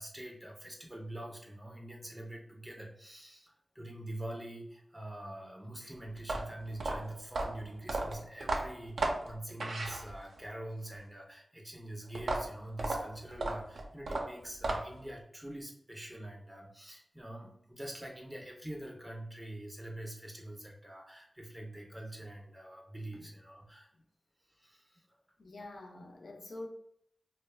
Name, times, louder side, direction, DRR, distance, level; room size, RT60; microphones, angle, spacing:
voice 1, 0.0-23.9 24.5-25.1, right 1 dB, 15° right, 0.4 m, -45 dB
sound 1, 6.2-10.5 12.1-15.1, right 2 dB, 90° right, 0.4 m, -35 dB
voice 2, 25.4-26.7, left 2 dB, 75° left, 0.5 m, -46 dB
2.2 x 2.1 x 3.2 m
cardioid pair, 55°, 0 cm